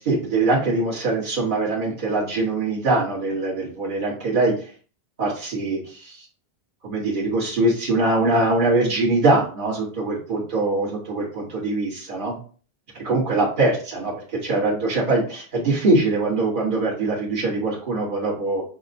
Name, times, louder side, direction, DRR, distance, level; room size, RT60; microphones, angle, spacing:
voice 1, 0.0-4.5 5.2-6.3 6.8-12.4 12.9-18.6, right 2 dB, 55° right, -4 dB, 1.5 m, -22 dB
6.2 x 2.1 x 2.6 m, 0.41 s
omnidirectional pair, 1.1 m